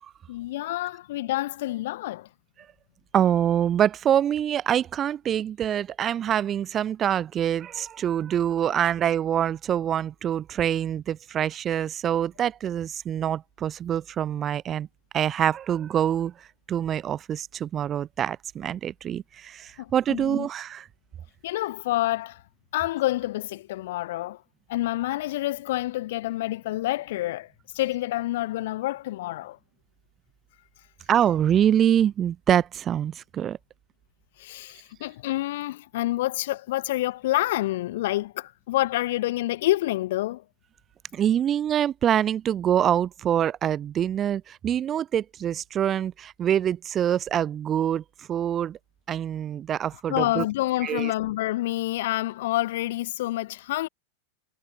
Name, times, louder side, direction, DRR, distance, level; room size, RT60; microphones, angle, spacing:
voice 1, 0.3-2.3 19.8-20.5 21.4-22.4 22.7-24.4 24.7-27.5 27.7-29.6 34.4-40.4 50.1-53.9, left 16 dB, 55° left, 2.9 m, -28 dB
voice 2, 3.1-14.9 15.1-20.9 31.1-33.6 41.1-48.8 49.1-50.4 50.8-51.1, right 10 dB, 25° right, 5.0 m, -25 dB
figure-of-eight pair, 90°, 0 cm